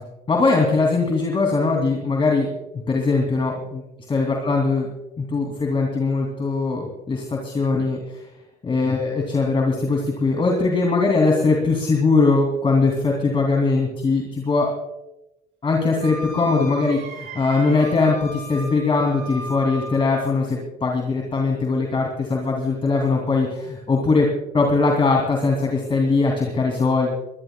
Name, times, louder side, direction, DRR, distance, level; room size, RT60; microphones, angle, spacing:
voice 1, 0.3-2.5 2.9-3.8 4.1-4.9 5.2-8.2 8.6-14.7 15.6-24.3 24.5-27.1, left 3 dB, 30° left, 0 dB, 2.9 m, -21 dB
Wind instrument woodwind instrument, 16.0-20.4, right 1 dB, 85° right, 5.6 m, -36 dB
22.0 x 19.5 x 2.3 m, 0.95 s
cardioid pair, 110°, 17 cm